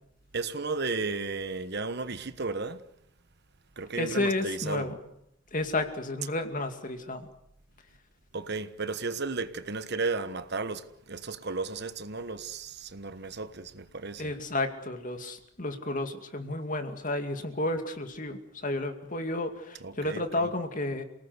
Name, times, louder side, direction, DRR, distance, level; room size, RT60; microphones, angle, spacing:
voice 1, 0.3-2.8 3.8-4.9 8.3-14.3 19.8-20.5, right 3 dB, 55° right, 1.3 m, -34 dB
voice 2, 3.9-5.0 5.5-7.3 14.2-21.0, left 2 dB, 40° left, 2.5 m, -32 dB
28.5 x 19.0 x 8.2 m
head